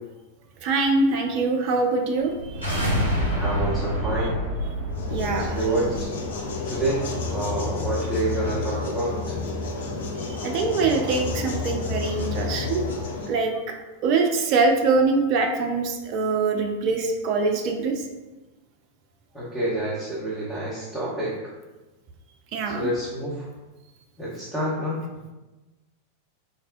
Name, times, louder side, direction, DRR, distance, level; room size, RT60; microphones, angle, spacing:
voice 1, 0.6-3.0 5.1-5.6 10.3-13.7 14.0-18.0 22.5-22.9, right 3 dB, 40° right, 3 dB, 0.3 m, -24 dB
sound 1, 2.2-7.3, equal, 85° left, 0.8 m, -28 dB
voice 2, 3.4-4.4 5.5-6.1 6.7-9.3 19.3-21.3 22.6-23.4 24.2-25.0, right 1 dB, 15° left, -9 dB, 0.8 m, -28 dB
sound 2, 4.9-13.3, left 4 dB, 60° left, 0.4 m, -30 dB
4.1 x 2.1 x 2.4 m, 1.1 s
figure-of-eight pair, 90°, 0 cm